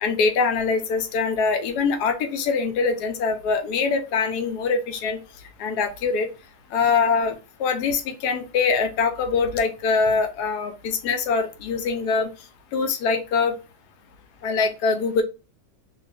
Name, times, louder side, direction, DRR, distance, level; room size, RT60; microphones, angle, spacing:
voice 1, 0.0-5.2 5.6-6.3 6.7-12.3 12.7-13.5 14.4-15.2, left 4 dB, 90° left, 7 dB, 1.2 m, -23 dB
2.7 x 2.3 x 3.3 m, 0.30 s
omnidirectional pair, 1.7 m